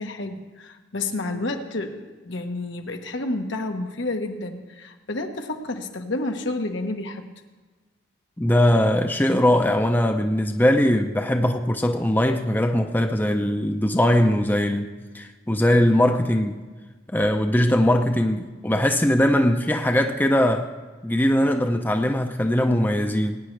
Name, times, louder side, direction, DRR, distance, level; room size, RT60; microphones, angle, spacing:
voice 1, 0.0-7.2, left 2 dB, 80° left, 4 dB, 1.2 m, -30 dB
voice 2, 8.4-16.6 17.1-20.7 21.0-23.4, left 1 dB, 10° left, 5 dB, 0.5 m, -21 dB
20.5 x 9.6 x 3.3 m, 1.4 s
head